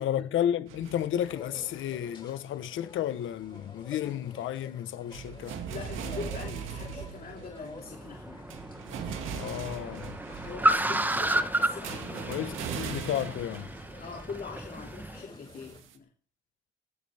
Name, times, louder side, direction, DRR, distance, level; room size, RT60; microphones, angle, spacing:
voice 1, 0.0-5.6 9.3-10.2 10.8-11.1 12.3-13.7, left 11 dB, 75° left, 1.1 m, -32 dB
sound 1, 0.7-2.0 3.3-3.7 4.0-4.1 5.1-10.8 11.8-14.2 14.6-16.0, right 7 dB, 85° right, 2.1 m, -40 dB
sound 2, 1.1-15.8, left 2 dB, 25° left, 6.4 m, -49 dB
voice 2, 5.7-8.5 10.4-12.5 14.0-16.1, left 5 dB, 50° left, 2.6 m, -43 dB
Car, 7.8-15.2, right 1 dB, 10° right, 1.2 m, -32 dB
18.0 x 14.5 x 3.5 m
cardioid pair, 90°, 20 cm